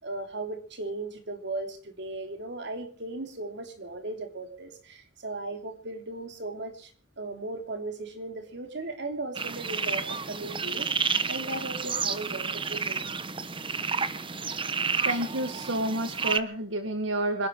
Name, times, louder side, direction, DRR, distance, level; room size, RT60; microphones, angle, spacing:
voice 1, 0.0-6.9 7.2-13.1, right 2 dB, 65° right, 3.4 m, -37 dB
sound 1, 9.3-16.4, right 5 dB, 30° right, 1.0 m, -30 dB
voice 2, 15.0-17.5, right 1 dB, 85° right, 1.9 m, -29 dB
26.0 x 11.5 x 4.8 m
head